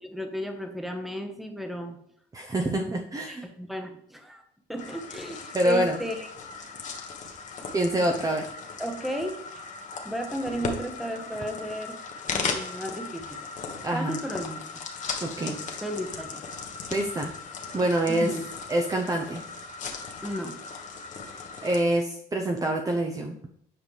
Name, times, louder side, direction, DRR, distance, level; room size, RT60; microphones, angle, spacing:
voice 1, 0.0-2.0 2.8-3.0 3.3-4.4 4.7-6.3 8.8-9.3 10.0-12.0 12.3-13.4 13.9-14.6 15.4-16.4 18.1-18.5 20.2-20.6, equal, ahead, 5 dB, 0.9 m, -34 dB
voice 2, 2.3-3.5 5.5-6.0 7.7-8.5 13.8-14.2 15.2-15.6 16.9-17.3 17.7-18.3 18.7-19.4 21.3-23.3, right 1 dB, 20° right, 2 dB, 0.7 m, -26 dB
sound 1, 4.8-21.8, left 5 dB, 45° left, 1.1 m, -37 dB
7.6 x 5.2 x 3.2 m, 0.69 s
cardioid pair, 110°, 17 cm